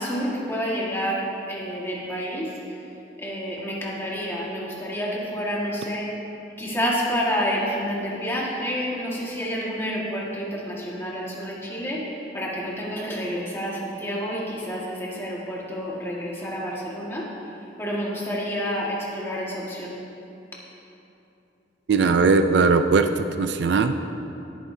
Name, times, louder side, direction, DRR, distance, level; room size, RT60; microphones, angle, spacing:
voice 1, 0.0-2.5 3.2-6.1 6.6-12.1 12.3-17.3 17.8-20.0, equal, 15° left, -5 dB, 1.7 m, -29 dB
voice 2, 21.9-23.9, right 4 dB, 60° right, 8 dB, 0.4 m, -19 dB
17.0 x 9.3 x 2.7 m, 2.9 s
head